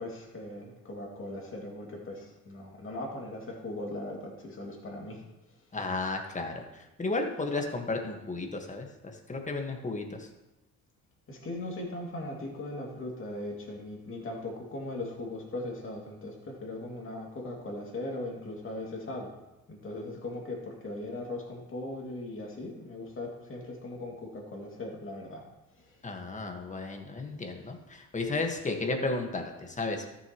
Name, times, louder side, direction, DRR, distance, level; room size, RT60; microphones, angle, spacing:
voice 1, 0.0-5.2 11.3-19.3 19.7-25.4 25.8-26.0, left 1 dB, 45° left, -1 dB, 2.5 m, -39 dB
voice 2, 5.7-10.3 26.0-30.2, left 3 dB, 25° left, 3 dB, 1.6 m, -33 dB
13.5 x 7.1 x 3.1 m, 0.97 s
cardioid pair, 90°, 30 cm